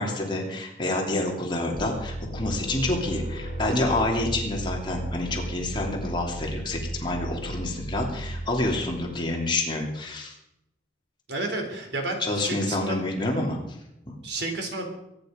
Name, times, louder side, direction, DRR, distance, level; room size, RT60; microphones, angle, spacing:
voice 1, 0.0-10.3 12.2-13.8 14.1-14.2, left 2 dB, 25° left, 0 dB, 2.9 m, -28 dB
sound 1, 1.7-9.2, right 1 dB, 60° left, 4.1 m, -34 dB
voice 2, 11.3-13.0 14.2-14.9, right 2 dB, 70° right, 3 dB, 3.8 m, -31 dB
23.0 x 10.0 x 5.2 m, 0.84 s
head